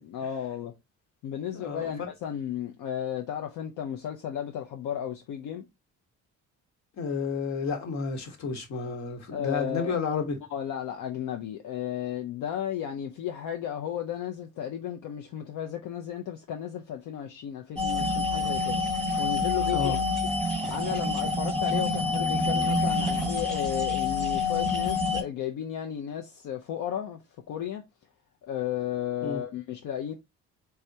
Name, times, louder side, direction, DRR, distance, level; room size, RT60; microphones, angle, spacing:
voice 1, 0.0-0.7 1.2-5.7 9.3-10.0 10.5-18.8 19.2-19.9 20.7-27.2 27.5-27.8 28.4-30.1, left 9 dB, 80° left, 0.6 m, -34 dB
voice 2, 1.5-2.1 7.0-10.4 19.7-20.0 29.2-29.4, left 5 dB, 65° left, 1.2 m, -31 dB
sound 1, 17.8-25.2, left 3 dB, ahead, 1.1 m, -27 dB
3.5 x 3.3 x 2.7 m
cardioid pair, 90°, 30 cm